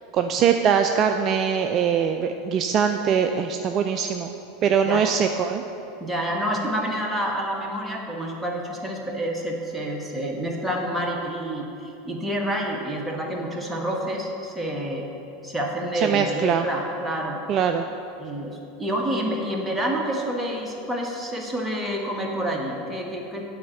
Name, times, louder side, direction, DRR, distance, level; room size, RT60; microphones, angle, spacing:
voice 1, 0.1-4.3 4.6-5.6 15.9-16.7 17.5-17.9, right 7 dB, 40° right, 6 dB, 0.4 m, -22 dB
voice 2, 6.0-15.1 15.4-17.4 18.2-23.4, equal, 5° right, -1 dB, 1.5 m, -28 dB
9.3 x 4.3 x 7.2 m, 2.8 s
figure-of-eight pair, 80°, 0 cm